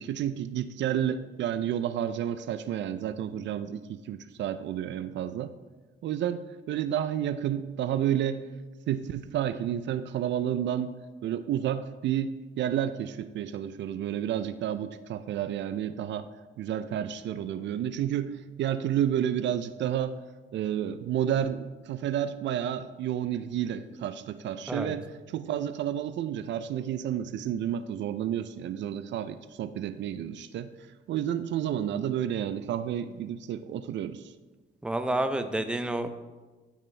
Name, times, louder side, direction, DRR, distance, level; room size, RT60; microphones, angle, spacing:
voice 1, 0.0-5.5 6.0-8.4 8.9-10.9 11.2-16.3 16.6-20.2 20.5-25.1 25.3-30.7 31.1-34.3, right 10 dB, 65° right, 12 dB, 0.4 m, -30 dB
voice 2, 34.8-36.1, right 1 dB, 5° right, 8 dB, 0.5 m, -29 dB
12.0 x 4.3 x 3.3 m, 1.3 s
cardioid pair, 90°, 20 cm